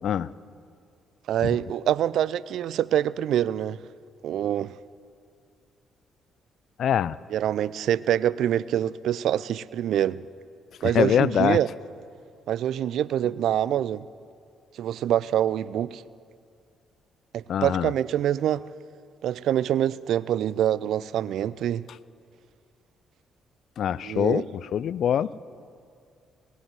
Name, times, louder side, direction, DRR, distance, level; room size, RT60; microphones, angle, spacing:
voice 1, 1.3-3.8 4.2-4.7 7.3-10.2 10.8-11.7 12.5-14.1 14.8-16.0 17.3-18.6 19.2-21.9 24.0-24.4, right 11 dB, 70° right, 20 dB, 0.3 m, -25 dB
voice 2, 6.8-7.2 10.9-11.6 17.5-17.9 23.8-25.3, left 9 dB, 65° left, 19 dB, 0.3 m, -24 dB
19.5 x 8.0 x 7.6 m, 2.3 s
hypercardioid pair, 45°, 0 cm